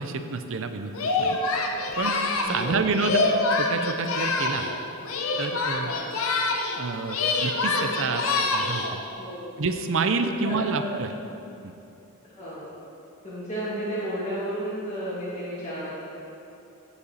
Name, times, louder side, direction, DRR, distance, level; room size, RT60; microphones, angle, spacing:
voice 1, 0.0-1.4 2.0-3.2 3.5-4.7 5.4-5.9 6.8-8.2 8.5-9.0 9.6-11.1 11.6-11.7, right 4 dB, 60° right, 8 dB, 0.6 m, -28 dB
Singing, 0.9-4.8 5.0-6.8 7.1-9.0, left 3 dB, 70° left, 0.9 m, -26 dB
voice 2, 2.4-3.1 5.8-6.0 8.2-8.3 9.2-9.5 10.2-10.9 12.2-12.7 13.2-15.9, equal, 30° left, -11 dB, 2.0 m, -33 dB
15.0 x 5.6 x 4.1 m, 2.8 s
head